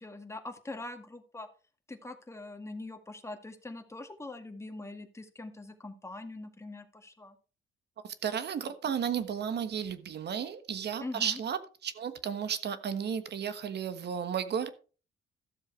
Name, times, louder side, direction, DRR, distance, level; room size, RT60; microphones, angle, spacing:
voice 1, 0.0-1.5 1.9-7.4 11.0-11.4, left 2 dB, 15° left, 6 dB, 1.9 m, -43 dB
voice 2, 8.0-14.7, right 8 dB, 60° right, 12 dB, 1.4 m, -33 dB
13.5 x 7.3 x 4.5 m, 0.37 s
cardioid pair, 90°, 20 cm